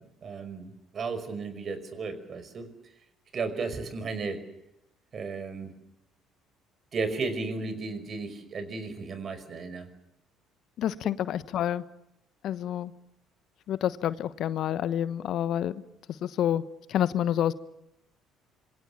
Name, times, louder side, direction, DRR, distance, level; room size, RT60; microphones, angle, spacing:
voice 1, 0.0-2.7 3.3-4.4 5.1-5.7 6.9-9.9, right 4 dB, 45° right, 11 dB, 5.4 m, -34 dB
voice 2, 10.8-11.8 12.4-12.9 13.7-15.7 16.2-16.6 16.9-17.5, left 11 dB, 60° left, 15 dB, 1.1 m, -28 dB
26.5 x 24.0 x 7.2 m, 0.82 s
hypercardioid pair, 55°, 0 cm